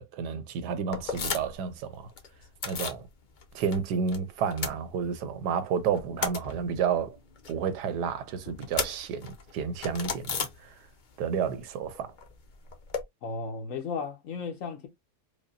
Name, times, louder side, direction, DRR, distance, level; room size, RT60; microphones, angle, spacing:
voice 1, 0.0-2.1 2.7-3.1 3.5-7.2 7.5-10.8 11.2-12.1, right 6 dB, 85° right, 1.2 m, -31 dB
sound 1, 0.9-1.7 1.9-3.0 3.4-4.2 4.4-5.4 5.8-11.1 11.4-13.0, left 6 dB, 80° left, 0.4 m, -36 dB
voice 2, 13.2-14.9, left 5 dB, 55° left, 1.2 m, -34 dB
4.9 x 2.2 x 2.5 m
omnidirectional pair, 1.7 m